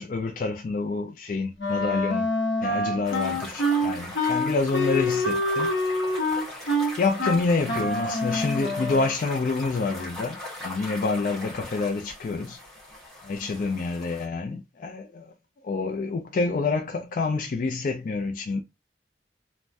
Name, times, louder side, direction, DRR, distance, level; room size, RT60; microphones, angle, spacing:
voice 1, 0.0-2.3 2.6-5.7 6.5-6.7 7.0-12.6 13.2-15.3 15.6-18.6, left 3 dB, 50° left, 0.3 m, -27 dB
Wind instrument woodwind instrument, 1.6-9.2, left 1 dB, 85° left, 0.9 m, -26 dB
sound 1, 3.0-14.3, left 1 dB, ahead, 1.4 m, -40 dB
3.3 x 2.1 x 2.6 m
head